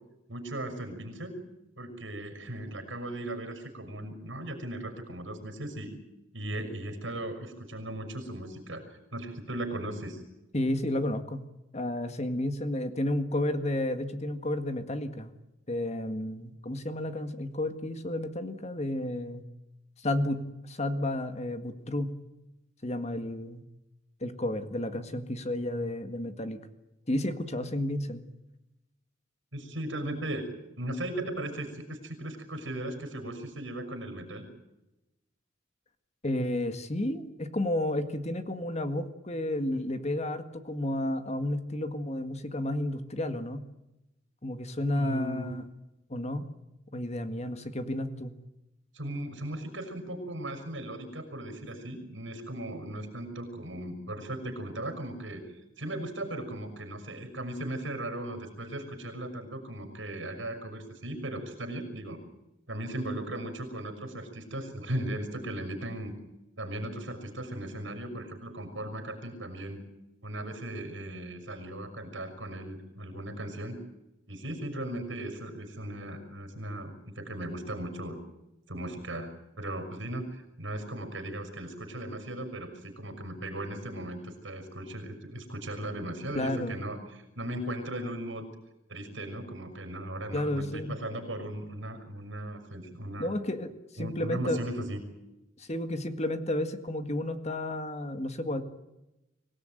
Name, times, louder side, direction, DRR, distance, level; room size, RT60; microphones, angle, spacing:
voice 1, 0.3-1.4 1.8-5.9 6.3-8.8 9.1-10.2 29.5-30.5 30.8-34.5 44.9-45.5 47.4-47.5 48.9-55.4 55.8-62.2 62.7-66.1 66.6-69.8 70.2-73.8 74.3-78.2 78.7-79.3 79.6-88.4 88.9-93.3 94.0-95.0, right 1 dB, 75° right, 6 dB, 5.9 m, -37 dB
voice 2, 10.5-11.4 11.7-15.3 15.7-19.4 20.0-22.1 22.8-23.6 24.2-26.6 27.1-28.2 36.2-43.6 44.4-45.7 46.1-46.4 46.9-48.3 86.3-86.8 90.3-91.0 93.2-94.6 95.6-98.6, left 1 dB, 35° left, 9 dB, 1.8 m, -32 dB
25.0 x 17.5 x 9.2 m, 0.96 s
head